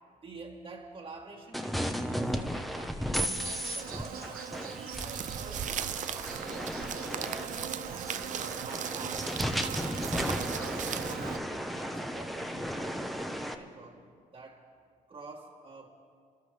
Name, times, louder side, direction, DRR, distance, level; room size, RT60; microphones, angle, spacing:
voice 1, 0.2-6.7 7.2-9.4 9.9-11.1 11.4-14.0 14.3-14.6 15.1-15.9, right 3 dB, 35° right, -3 dB, 1.5 m, -48 dB
sound 1, 1.5-13.5, equal, ahead, 0.9 m, -35 dB
Insect, 3.4-11.4, right 7 dB, 70° right, 0.9 m, -41 dB
sound 2, 4.9-11.2, right 9 dB, 55° right, 0.5 m, -38 dB
27.0 x 12.0 x 3.4 m, 2.2 s
cardioid pair, 80°, 15 cm